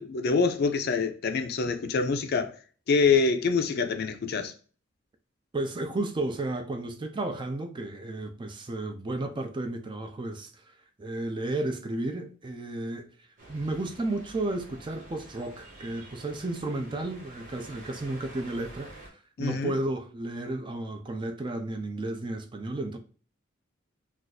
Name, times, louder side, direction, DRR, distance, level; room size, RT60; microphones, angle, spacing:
voice 1, 0.0-2.6 2.9-4.5 19.4-19.7, left 4 dB, 55° left, 0.4 m, -25 dB
voice 2, 5.5-13.1 13.5-23.0, right 2 dB, 25° right, 0.4 m, -33 dB
sound 1, 13.4-19.1, right 1 dB, 45° right, 0.9 m, -48 dB
2.6 x 2.3 x 3.9 m
head